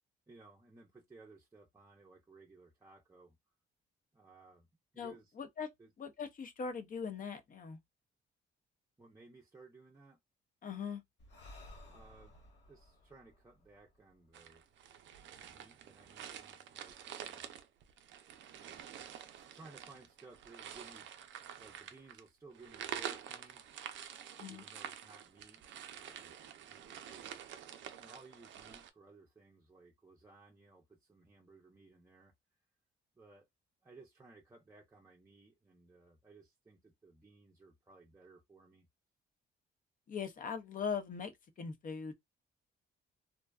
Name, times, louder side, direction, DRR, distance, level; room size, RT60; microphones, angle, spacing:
voice 1, 0.3-3.4 4.1-4.7 4.9-5.3 5.8-5.9 9.0-10.2 11.9-12.4 12.7-14.6 15.3-17.4 18.5-18.9 19.1-21.3 21.6-23.6 24.5-26.4 26.7-27.3 28.0-32.3 33.2-33.5 33.8-38.9, right 3 dB, 15° right, 0.5 m, -59 dB
voice 2, 5.0-5.7 6.0-7.8 10.6-11.0 24.4-24.6 40.1-42.1, left 6 dB, 45° left, 0.6 m, -40 dB
Breathing, 11.2-14.7, left 1 dB, 65° left, 1.3 m, -57 dB
sound 1, 14.3-28.9, right 9 dB, 70° right, 0.4 m, -48 dB
2.5 x 2.2 x 2.3 m
cardioid pair, 90°, 20 cm